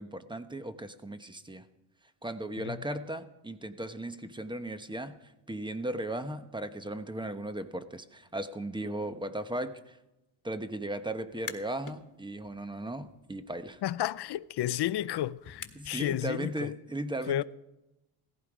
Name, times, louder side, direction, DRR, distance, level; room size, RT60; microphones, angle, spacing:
voice 1, 0.0-1.6 2.2-10.0 10.4-13.8 15.7-17.4, right 1 dB, 10° right, 1.0 m, -37 dB
sound 1, 11.2-12.0 12.4-16.2, left 7 dB, 40° left, 1.5 m, -48 dB
voice 2, 13.8-16.7 17.3-17.4, left 13 dB, 55° left, 0.6 m, -32 dB
17.0 x 15.0 x 5.0 m
cardioid pair, 100°, 50 cm